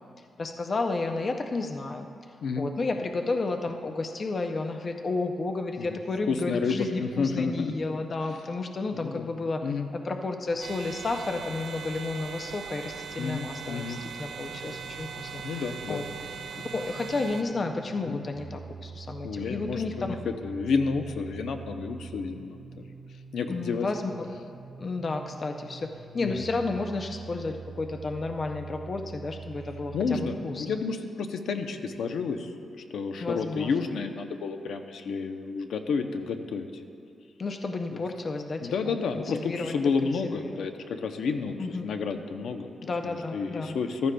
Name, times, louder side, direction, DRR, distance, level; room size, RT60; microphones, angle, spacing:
voice 1, 0.4-2.1 2.6-9.6 9.9-15.6 15.9-16.0 16.7-20.1 23.5-24.3 24.8-25.9 26.1-30.7 33.2-33.7 37.4-39.7 40.4-40.6 41.6-41.9 42.8-43.7, left 3 dB, 30° left, 5 dB, 0.4 m, -32 dB
voice 2, 6.3-7.7 8.3-8.4 8.9-9.3 9.6-9.9 13.2-14.0 15.4-16.0 18.1-18.2 19.2-22.6 23.3-23.9 26.2-26.4 29.9-32.5 32.9-36.8 37.9-38.0 38.6-42.7 43.0-44.1, left 5 dB, 75° left, 6 dB, 0.6 m, -30 dB
sound 1, 10.6-17.4, right 6 dB, 60° right, 0.6 m, -40 dB
sound 2, 14.3-30.3, right 5 dB, 35° right, 1.0 m, -45 dB
14.5 x 13.0 x 2.2 m, 2.4 s
wide cardioid pair, 180°, 0 cm